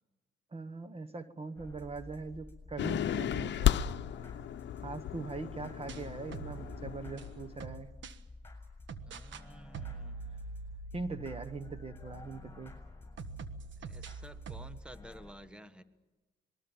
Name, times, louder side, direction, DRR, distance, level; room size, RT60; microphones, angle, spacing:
voice 1, 0.5-3.9 4.8-7.9 10.9-12.7, right 3 dB, 30° right, 11 dB, 1.2 m, -41 dB
sound 1, 1.6-15.3, left 2 dB, 10° left, 7.0 m, -51 dB
sound 2, 2.8-7.6, left 11 dB, 65° left, 0.8 m, -34 dB
sound 3, 5.5-8.2 8.9-9.5 9.7-12.7 13.2-14.8, right 5 dB, 70° right, 1.4 m, -45 dB
voice 2, 9.1-10.2 13.8-15.8, right 1 dB, 5° right, 11 dB, 1.3 m, -52 dB
26.5 x 21.0 x 7.2 m, 1.2 s
cardioid pair, 90°, 20 cm